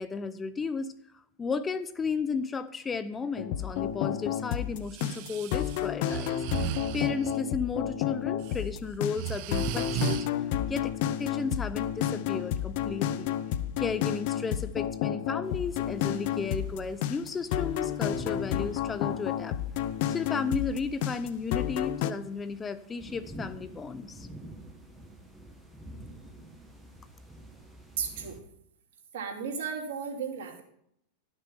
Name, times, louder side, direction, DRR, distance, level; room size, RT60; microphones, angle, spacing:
voice 1, 0.0-6.4 6.9-10.2 10.7-13.3 13.8-19.6 20.1-24.3, left 5 dB, 20° left, 13 dB, 0.6 m, -34 dB
sound 1, 3.4-22.1, left 11 dB, 60° left, 0.7 m, -31 dB
Breathing, 4.8-7.4 8.2-8.6 8.9-10.3, right 12 dB, 55° right, 0.5 m, -35 dB
sound 2, 15.4-28.4, right 1 dB, 5° right, 1.7 m, -49 dB
voice 2, 28.0-28.4 29.1-30.6, right 6 dB, 70° right, 2 dB, 2.7 m, -34 dB
12.0 x 6.2 x 5.6 m, 0.71 s
hypercardioid pair, 125°, 0 cm